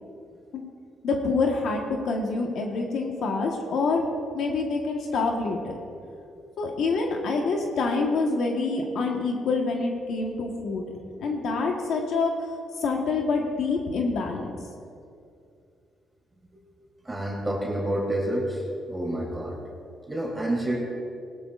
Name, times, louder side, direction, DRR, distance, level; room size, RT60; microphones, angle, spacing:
voice 1, 1.0-4.1 4.3-5.8 6.6-10.8 11.2-12.5 12.8-14.6, left 3 dB, 70° left, 1 dB, 1.3 m, -26 dB
voice 2, 17.0-18.6 18.9-19.6 20.1-20.9, right 1 dB, 15° right, -3 dB, 3.3 m, -28 dB
17.5 x 12.5 x 2.5 m, 2.4 s
cardioid pair, 90°, 0 cm